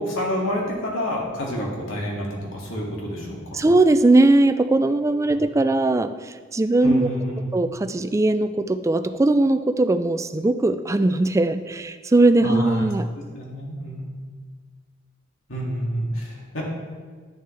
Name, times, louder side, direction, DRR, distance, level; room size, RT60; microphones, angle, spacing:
voice 1, 0.0-2.3 2.5-3.6 6.8-7.4 12.4-12.8 13.3-14.1 15.5-16.6, equal, 90° left, -3 dB, 2.1 m, -28 dB
voice 2, 3.5-7.1 7.5-13.1, right 2 dB, 15° right, 11 dB, 0.3 m, -19 dB
11.0 x 6.8 x 3.3 m, 1.5 s
head